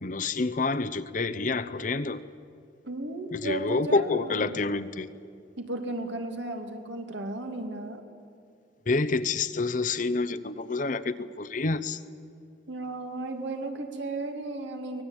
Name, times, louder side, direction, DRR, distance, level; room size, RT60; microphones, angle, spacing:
voice 1, 0.0-2.2 3.3-5.1 8.9-12.0, left 3 dB, 45° left, 12 dB, 0.7 m, -28 dB
voice 2, 2.9-4.5 5.6-8.0 12.7-15.0, right 2 dB, 75° right, 4 dB, 2.6 m, -35 dB
24.0 x 19.5 x 8.9 m, 2.4 s
head